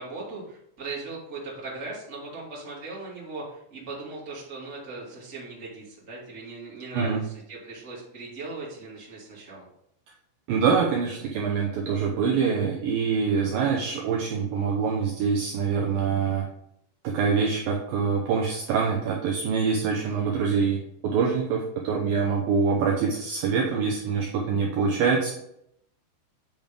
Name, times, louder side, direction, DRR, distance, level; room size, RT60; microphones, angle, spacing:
voice 1, 0.0-9.7 19.9-20.4, right 3 dB, 20° right, -6 dB, 2.1 m, -39 dB
voice 2, 10.5-16.5 17.0-25.3, right 5 dB, 80° right, -1 dB, 2.1 m, -25 dB
8.7 x 5.4 x 3.6 m, 0.75 s
omnidirectional pair, 5.1 m